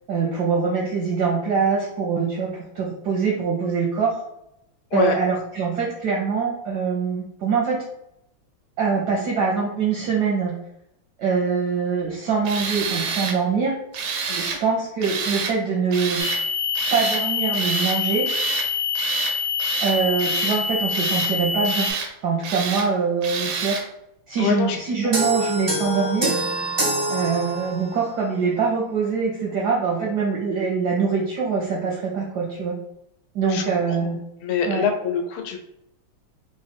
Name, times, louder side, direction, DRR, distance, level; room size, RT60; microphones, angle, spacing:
voice 1, 0.1-4.2 4.9-7.8 8.8-10.6 11.2-13.7 14.3-16.2 16.9-18.3 19.8-21.9 22.2-23.8 24.3-26.4 27.1-32.7 33.3-34.2 34.7-34.8, right 5 dB, 75° right, -2 dB, 0.9 m, -23 dB
Tools, 12.4-13.4 13.9-14.6 15.0-15.5 15.9-16.4 16.7-17.2 17.5-18.0 18.3-18.7 19.0-19.3 19.6-20.6 20.9-21.3 21.6-22.1 22.4-22.9 23.2-23.8, right 5 dB, 90° right, 1.6 m, -28 dB
voice 2, 14.3-14.6 24.4-24.8 33.5-33.6 34.0-34.1 34.4-35.6, left 6 dB, 85° left, 3 dB, 1.5 m, -24 dB
sound 1, 16.2-21.9, left 5 dB, 65° left, 1.5 m, -25 dB
sound 2, 25.1-28.0, right 1 dB, 50° right, 0.3 m, -25 dB
4.0 x 2.1 x 3.5 m, 0.80 s
omnidirectional pair, 2.4 m